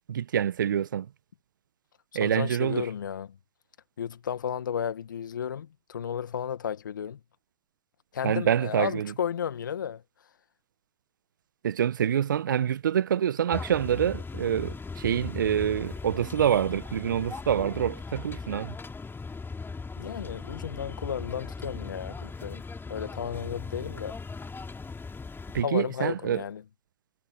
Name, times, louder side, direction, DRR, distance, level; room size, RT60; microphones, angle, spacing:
voice 1, 0.1-1.1 2.1-2.9 8.2-9.1 11.6-18.7 25.5-26.4, right 9 dB, 80° right, 1.1 m, -26 dB
voice 2, 2.2-3.3 4.0-7.2 8.1-10.0 20.0-24.2 25.6-26.6, left 8 dB, 85° left, 1.8 m, -33 dB
sound 1, 13.5-25.6, left 4 dB, 20° left, 3.2 m, -39 dB
figure-of-eight pair, 65°, 10 cm